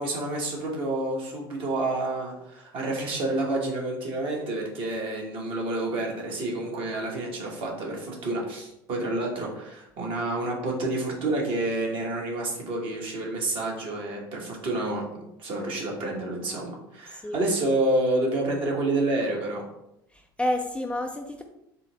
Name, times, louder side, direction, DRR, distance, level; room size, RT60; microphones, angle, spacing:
voice 1, 0.0-19.6, right 2 dB, 50° right, -1 dB, 1.3 m, -29 dB
voice 2, 17.1-17.5 20.1-21.4, left 1 dB, 10° left, 3 dB, 0.4 m, -30 dB
4.2 x 2.0 x 4.0 m, 0.83 s
hypercardioid pair, 70°, 12 cm